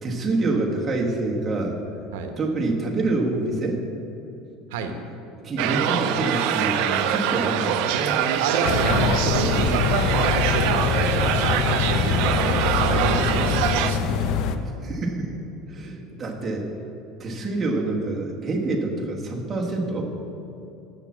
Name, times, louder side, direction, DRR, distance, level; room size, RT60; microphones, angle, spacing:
voice 1, 0.0-1.7 2.4-3.8 5.4-8.2 9.4-9.8 14.6-15.3 15.7-16.7 17.2-20.1, right 2 dB, 20° right, -2 dB, 1.2 m, -26 dB
sound 1, 5.6-13.9, right 9 dB, 65° right, 0.5 m, -24 dB
voice 2, 8.4-14.3, right 4 dB, 85° right, 5 dB, 0.9 m, -29 dB
sound 2, 8.6-14.6, left 7 dB, 50° left, 0.5 m, -24 dB
7.1 x 6.9 x 7.2 m, 2.8 s
cardioid pair, 150°, 0 cm